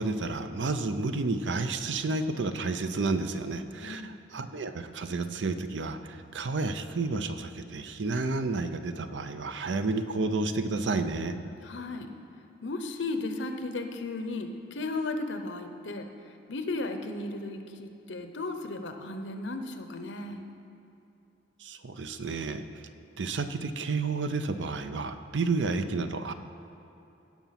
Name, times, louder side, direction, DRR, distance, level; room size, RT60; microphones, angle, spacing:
voice 1, 0.0-11.4 21.6-22.6 23.2-26.3, right 3 dB, 80° right, 9 dB, 0.6 m, -31 dB
voice 2, 3.8-4.1 11.6-12.1 12.6-16.1 16.5-20.5, left 2 dB, 85° left, 7 dB, 0.9 m, -35 dB
16.0 x 6.0 x 5.8 m, 2.9 s
head